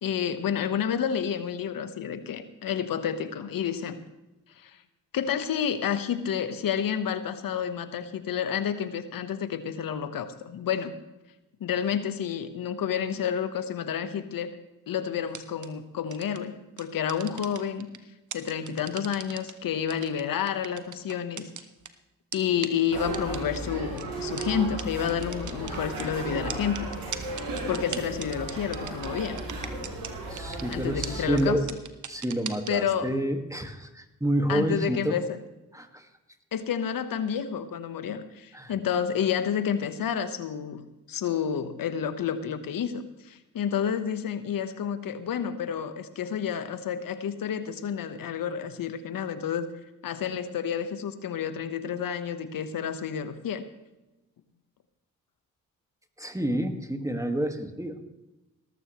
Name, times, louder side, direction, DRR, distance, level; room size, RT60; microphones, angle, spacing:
voice 1, 0.0-4.0 4.6-4.8 5.1-10.9 11.6-14.6 14.9-17.9 18.3-21.5 22.3-26.9 27.7-29.4 30.7-31.6 32.7-33.1 34.5-35.4 36.5-49.7 50.0-53.6, left 8 dB, 70° left, 11 dB, 1.2 m, -30 dB
sound 1, 15.3-15.7 16.1-16.4 16.8-18.0 18.3-19.5 19.9-21.9 22.3-22.4 22.6-22.7 23.1-23.6 24.0-24.1 24.4-24.5 24.8-24.9 25.1-26.0 26.5-30.1 30.4-30.8 31.0-31.1 31.4-31.5 31.7-32.7, right 8 dB, 55° right, 1.2 m, -37 dB
sound 2, 22.9-31.5, right 2 dB, 85° right, 4.9 m, -35 dB
voice 2, 30.3-31.7 32.1-35.2 35.7-36.1 38.5-38.7 56.2-58.0, right 1 dB, 10° right, 5 dB, 1.9 m, -29 dB
18.5 x 13.5 x 3.2 m, 1.0 s
supercardioid pair, 45°, 35 cm